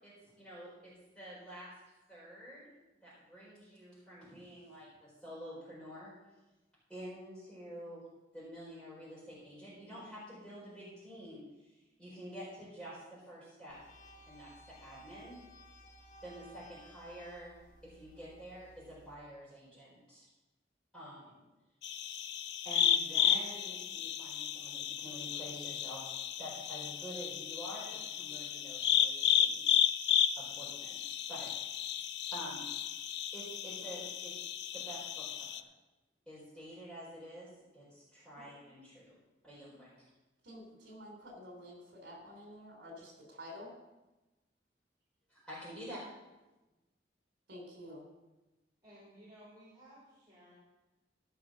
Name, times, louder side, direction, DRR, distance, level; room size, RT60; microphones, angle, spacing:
voice 1, 0.0-1.7 2.1-2.7 3.0-6.1 6.9-8.0 8.3-13.8 14.3-15.4 16.2-17.6 17.8-20.3 20.9-21.4 22.6-29.6 30.4-31.8 32.3-32.7 33.3-34.3 34.7-35.7 36.3-39.2 39.4-40.1 45.3-46.0, equal, 5° left, -12 dB, 4.6 m, -48 dB
sound 1, 13.7-19.1, equal, 45° left, 1.8 m, -57 dB
sound 2, 21.8-35.6, left 9 dB, 75° left, 0.6 m, -33 dB
voice 2, 40.4-43.8 47.5-48.1, left 1 dB, 75° right, 1 dB, 3.7 m, -50 dB
voice 3, 48.8-50.5, right 1 dB, 20° right, -9 dB, 4.8 m, -57 dB
15.0 x 6.1 x 6.5 m, 1.1 s
head